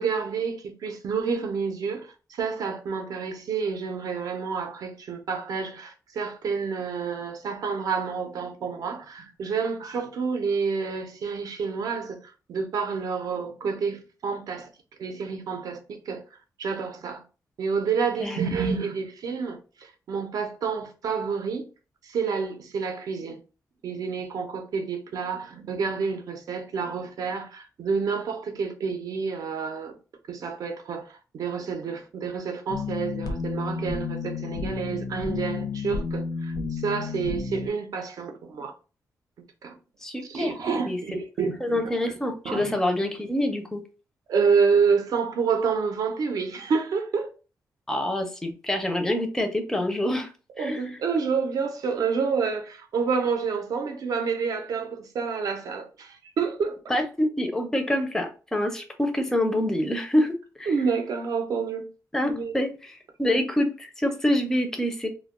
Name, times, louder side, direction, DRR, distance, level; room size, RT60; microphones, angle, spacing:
voice 1, 0.0-14.7 15.0-16.2 16.6-17.2 17.6-21.6 22.0-23.4 23.8-30.0 30.3-38.7 39.6-39.7 40.2-42.1 42.4-42.7 44.3-47.3 50.6-56.8 60.7-61.9 62.3-62.5, right 5 dB, 65° right, 0.6 m, -28 dB
sound 1, 32.7-37.7, left 4 dB, 70° left, 0.5 m, -31 dB
voice 2, 40.0-40.6 40.9-41.0 41.6-43.8 47.9-50.3 50.6-50.9 56.9-60.7 62.1-65.1, left 1 dB, 5° left, 0.4 m, -26 dB
2.2 x 2.2 x 3.5 m
wide cardioid pair, 165°, 7 cm